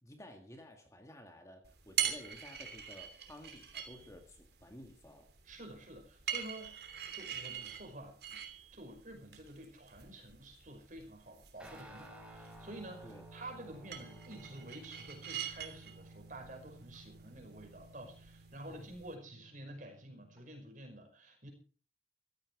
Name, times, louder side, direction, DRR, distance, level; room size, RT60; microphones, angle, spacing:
voice 1, 0.0-5.3 13.0-13.2 13.6-13.7 18.6-18.9, left 1 dB, 15° left, 4 dB, 1.9 m, -53 dB
sound 1, 1.6-19.1, right 9 dB, 60° right, 3.1 m, -44 dB
voice 2, 5.4-6.8 7.1-8.4 8.7-21.5, right 1 dB, 45° right, 4 dB, 5.5 m, -50 dB
Guitar, 11.6-20.4, right 2 dB, 5° right, 4.1 m, -55 dB
16.0 x 14.0 x 4.8 m, 0.40 s
head